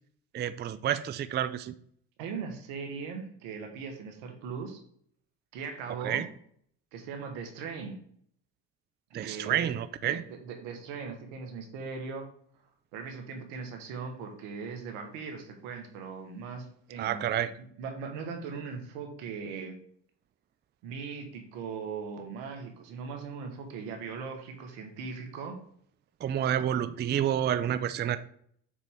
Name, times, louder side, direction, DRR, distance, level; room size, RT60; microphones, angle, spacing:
voice 1, 0.3-1.7 6.0-6.3 9.1-10.2 17.0-17.5 26.2-28.2, right 10 dB, 25° right, 0.4 m, -29 dB
voice 2, 2.2-4.8 5.5-6.2 6.9-8.0 9.2-9.7 10.0-12.3 12.9-17.2 17.6-19.8 20.8-25.6 28.0-28.2, right 5 dB, 85° right, 1.4 m, -39 dB
6.9 x 4.2 x 3.5 m
supercardioid pair, 70°, 43 cm